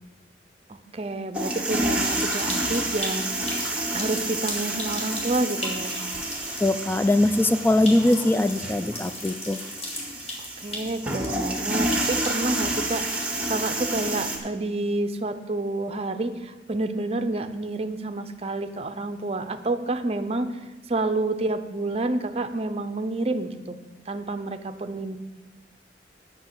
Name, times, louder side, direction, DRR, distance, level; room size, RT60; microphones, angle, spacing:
voice 1, 0.7-3.6 3.9-6.0 10.6-20.5 20.9-23.8 24.1-25.2, right 2 dB, 35° right, 8 dB, 0.6 m, -29 dB
sound 1, 1.3-14.4, right 1 dB, 5° right, 1.3 m, -29 dB
sound 2, 1.4-13.8, left 1 dB, 35° left, 2.1 m, -38 dB
voice 2, 6.6-9.6, left 1 dB, 10° left, 11 dB, 0.4 m, -21 dB
8.0 x 6.1 x 7.9 m, 1.2 s
head